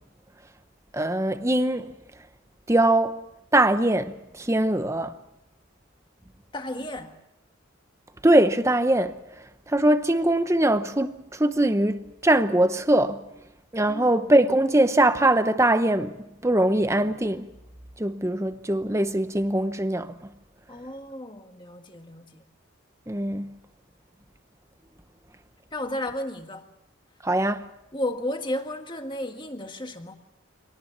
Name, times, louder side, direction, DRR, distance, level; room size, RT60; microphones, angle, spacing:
voice 1, 0.9-1.9 2.7-3.2 3.5-5.1 8.2-9.2 9.7-13.2 13.7-16.2 16.4-17.5 18.0-20.2 23.1-23.6 27.2-27.7, right 1 dB, 15° right, 0.8 m, -22 dB
voice 2, 6.5-7.1 13.9-14.1 20.7-22.4 25.7-26.7 27.9-30.1, left 1 dB, 20° left, 1.7 m, -33 dB
25.0 x 18.5 x 7.2 m
head